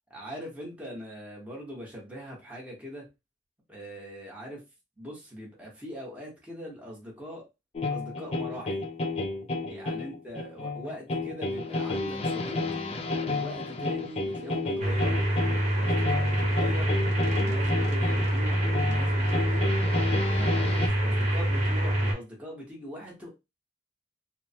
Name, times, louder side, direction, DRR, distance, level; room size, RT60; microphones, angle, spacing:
voice 1, 0.1-3.0 3.7-4.6 5.0-7.4 7.9-8.8 9.7-12.6 13.2-15.3 15.7-17.0 17.2-19.6 20.3-23.3, equal, 5° right, -3 dB, 0.9 m, -41 dB
sound 1, 7.7-20.9, left 3 dB, 35° left, 0.4 m, -32 dB
sound 2, 14.8-22.1, right 1 dB, 40° right, 1.0 m, -26 dB
3.1 x 2.1 x 2.7 m, 0.25 s
head